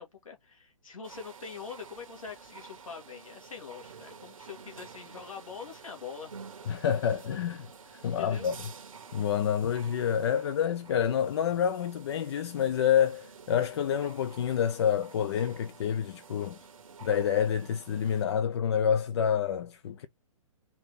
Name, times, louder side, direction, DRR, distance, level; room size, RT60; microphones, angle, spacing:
voice 1, 0.0-6.3 7.0-7.1 8.0-8.5, left 6 dB, 70° left, 2.1 m, -44 dB
sound 1, 1.0-18.3, right 6 dB, 70° right, 1.0 m, -50 dB
voice 2, 6.7-7.7 7.9-8.5 9.1-16.6 17.0-20.1, left 8 dB, 50° left, 0.5 m, -28 dB
4.3 x 2.8 x 3.6 m
figure-of-eight pair, 125°, 18 cm